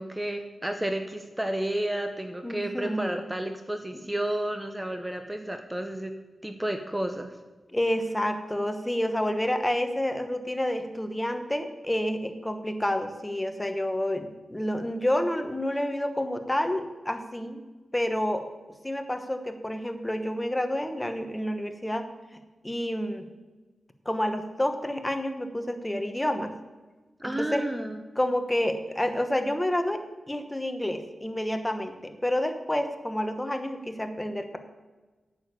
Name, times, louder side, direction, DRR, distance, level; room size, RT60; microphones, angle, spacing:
voice 1, 0.0-6.1 6.4-7.3 27.2-28.0, right 1 dB, 10° right, 6 dB, 0.9 m, -31 dB
voice 2, 2.4-3.3 3.9-4.0 7.7-17.7 17.9-18.5 18.8-22.1 22.6-23.3 24.0-26.5 27.2-27.7 28.2-30.0 30.3-34.6, left 1 dB, 15° left, 7 dB, 1.1 m, -29 dB
8.8 x 7.1 x 8.2 m, 1.2 s
cardioid pair, 70°, 0 cm